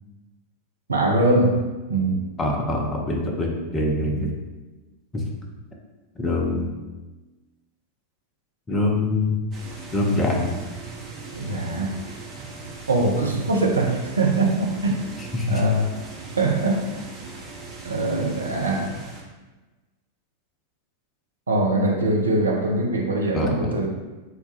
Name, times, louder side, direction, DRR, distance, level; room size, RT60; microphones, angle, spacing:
voice 1, 0.9-1.6 1.9-2.3 4.1-4.2 11.3-12.0 12.9-15.9 16.3-17.0 17.8-19.0 21.5-23.9, right 2 dB, 75° right, 1 dB, 0.6 m, -22 dB
voice 2, 2.4-4.3 5.1-5.2 6.2-6.7 8.7-9.4 9.9-10.5 15.3-15.6 23.3-23.7, left 2 dB, 15° left, 0 dB, 0.6 m, -24 dB
sound 1, 9.5-19.2, right 3 dB, 30° right, 0.8 m, -39 dB
4.0 x 2.3 x 4.2 m, 1.2 s
figure-of-eight pair, 90°, 0 cm